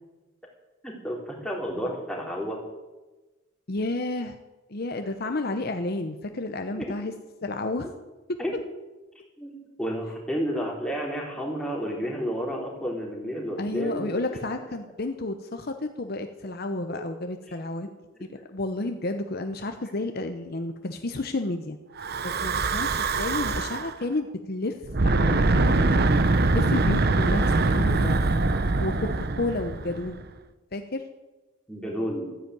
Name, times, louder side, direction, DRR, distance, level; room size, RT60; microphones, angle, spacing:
voice 1, 0.8-2.6 6.8-6.9 8.4-8.5 9.4-14.2 14.5-14.6 16.9-17.0 31.7-32.3, equal, 5° left, -2 dB, 3.6 m, -31 dB
voice 2, 3.7-4.4 4.7-7.1 7.4-7.9 8.3-8.4 13.6-17.9 18.2-21.8 22.2-24.8 25.0-26.1 26.5-28.2 28.8-30.2 30.7-31.0, left 2 dB, 45° left, 7 dB, 0.9 m, -31 dB
Breathing / Wind, 22.0-23.9 24.8-30.2, right 3 dB, 50° right, 0.8 m, -23 dB
13.5 x 10.0 x 9.3 m, 1.1 s
head